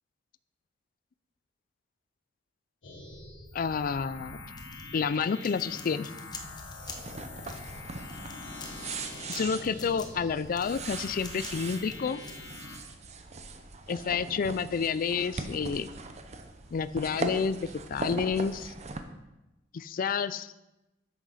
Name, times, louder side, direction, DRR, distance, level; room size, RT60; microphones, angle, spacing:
sound 1, 2.8-12.8, left 2 dB, 85° left, 1.4 m, -44 dB
voice 1, 3.5-4.4 4.9-6.1 9.3-12.2 13.9-15.9 16.7-18.7 19.7-20.5, left 6 dB, 50° left, 16 dB, 0.4 m, -29 dB
sound 2, 4.6-12.3, left 4 dB, 20° left, 0.9 m, -47 dB
sound 3, 6.3-19.0, right 3 dB, 35° right, 0.7 m, -40 dB
8.2 x 6.2 x 5.6 m, 0.99 s
head